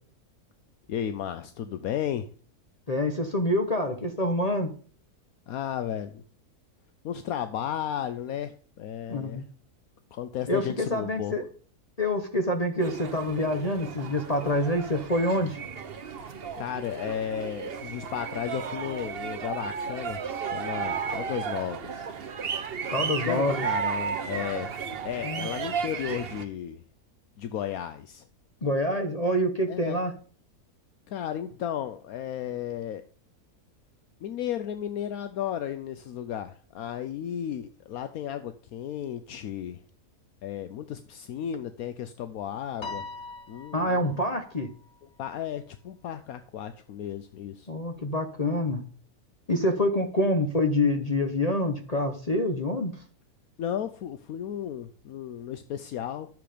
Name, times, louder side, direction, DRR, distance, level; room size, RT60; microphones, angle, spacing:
voice 1, 0.9-2.3 5.5-6.2 7.0-9.4 10.1-11.3 16.2-22.1 22.9-24.7 25.0-26.8 27.4-28.3 29.7-30.0 31.1-33.0 34.2-39.8 40.4-43.0 43.5-44.2 45.2-47.7 53.6-56.3, left 10 dB, 75° left, 10 dB, 1.1 m, -34 dB
voice 2, 2.9-4.7 9.1-9.4 10.5-11.4 12.0-15.6 22.9-23.6 25.2-25.5 28.6-30.1 43.7-44.7 47.7-48.8 49.5-52.9, left 1 dB, 30° left, 5 dB, 0.9 m, -26 dB
sound 1, 12.8-26.4, right 6 dB, 45° right, 1.0 m, -34 dB
Piano, 42.8-45.3, left 3 dB, 50° left, 1.3 m, -42 dB
11.0 x 7.2 x 5.0 m, 0.42 s
omnidirectional pair, 1.6 m